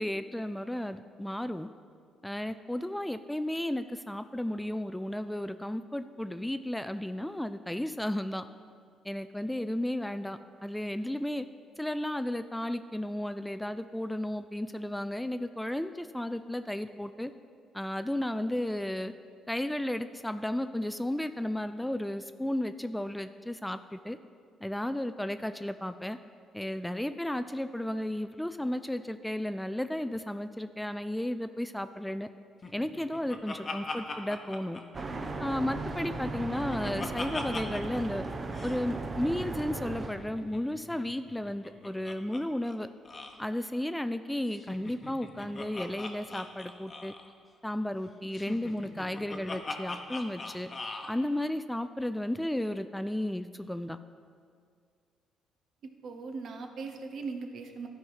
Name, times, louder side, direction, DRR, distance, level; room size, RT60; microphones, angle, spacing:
voice 1, 0.0-1.7 2.2-8.5 9.0-11.5 11.8-17.3 17.7-19.1 19.5-24.2 24.6-26.2 26.5-32.3 32.7-34.8 35.4-38.2 38.6-42.9 43.4-47.1 47.6-50.7 51.1-54.0, left 1 dB, 5° left, 11 dB, 0.3 m, -33 dB
Laughter, 32.6-35.5 35.9-38.0 38.2-38.3 38.5-38.8 40.0-42.4 42.7-42.8 43.0-43.4 44.5-47.3 48.3-51.1, left 3 dB, 35° left, 0.9 m, -41 dB
sound 1, 34.9-40.1, right 2 dB, 35° right, 0.7 m, -36 dB
voice 2, 55.8-57.9, right 4 dB, 65° right, 5 dB, 0.9 m, -39 dB
12.5 x 4.6 x 5.6 m, 2.2 s
cardioid pair, 85°, 0 cm